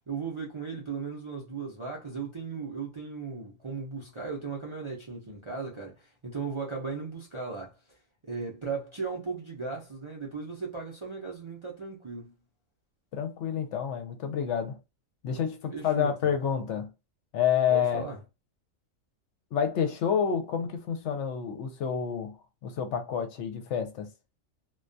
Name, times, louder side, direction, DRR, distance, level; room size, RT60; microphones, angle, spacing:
voice 1, 0.1-8.0 8.2-12.3 15.7-16.4 17.7-18.2, right 5 dB, 45° right, 0.4 m, -37 dB
voice 2, 13.1-14.8 15.2-16.9 17.3-18.0 19.5-24.1, left 8 dB, 70° left, 0.8 m, -29 dB
2.3 x 2.2 x 2.5 m
omnidirectional pair, 1.4 m